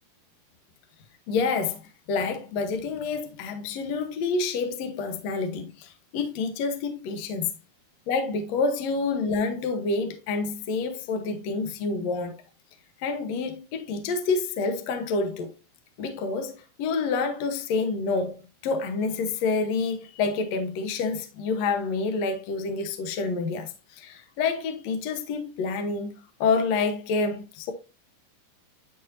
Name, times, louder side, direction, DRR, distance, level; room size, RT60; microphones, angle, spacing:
voice 1, 1.3-1.8 2.1-7.5 8.1-12.4 13.0-15.5 16.0-26.1 26.4-27.7, left 4 dB, 65° left, 1.8 m, -28 dB
11.5 x 4.7 x 2.6 m
omnidirectional pair, 4.3 m